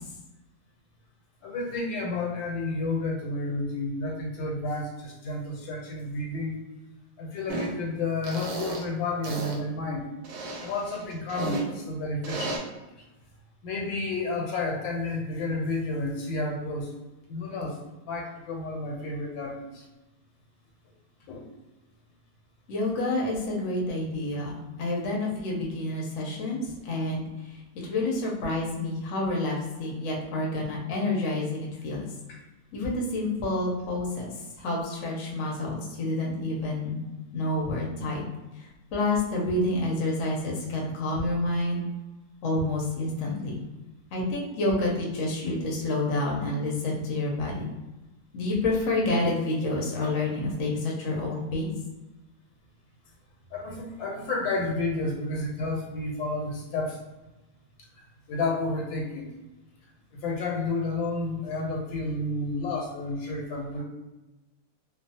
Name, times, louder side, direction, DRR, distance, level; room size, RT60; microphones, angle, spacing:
voice 1, 1.4-6.5 7.2-10.1 10.6-12.6 13.6-16.9 17.3-19.8 21.3-21.5 32.3-32.4 53.5-57.0 58.3-59.3 60.1-63.8, left 2 dB, 85° left, -1 dB, 1.4 m, -31 dB
sound 1, 7.5-7.7 8.2-8.8 9.2-9.6 10.2-11.6 12.2-12.6, right 2 dB, 70° right, 1.1 m, -33 dB
voice 2, 22.7-27.2 27.8-32.1 32.7-34.3 34.6-37.0 37.3-38.2 38.9-41.8 42.4-43.6 44.1-47.7 48.3-51.7, left 2 dB, 65° left, -3 dB, 0.8 m, -28 dB
3.1 x 2.0 x 2.7 m, 1.1 s
omnidirectional pair, 2.0 m